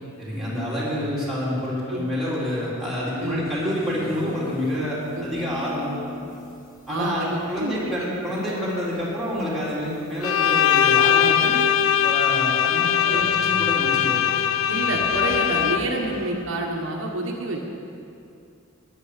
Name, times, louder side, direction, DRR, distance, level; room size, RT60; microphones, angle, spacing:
voice 1, 0.2-5.9 6.9-11.6 12.0-14.2, left 1 dB, ahead, -8 dB, 3.4 m, -28 dB
sound 1, 3.1-16.3, left 1 dB, 40° left, 1.6 m, -42 dB
voice 2, 6.9-7.9 13.1-13.2 14.7-17.6, right 2 dB, 65° right, 0 dB, 1.4 m, -28 dB
Bowed string instrument, 10.2-16.1, left 9 dB, 75° left, 0.5 m, -21 dB
13.5 x 10.0 x 6.7 m, 2.6 s
head